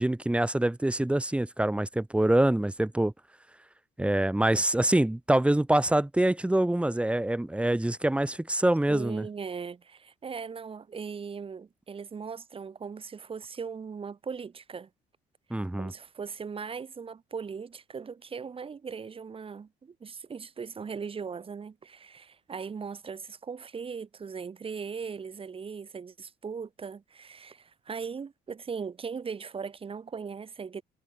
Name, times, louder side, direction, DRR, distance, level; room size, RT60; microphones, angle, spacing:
voice 1, 0.0-3.1 4.0-9.3 15.5-15.9, right 1 dB, 5° right, 4.5 m, -25 dB
voice 2, 8.9-14.9 15.5-30.8, right 6 dB, 35° right, 5.8 m, -39 dB
cardioid pair, 110°, 17 cm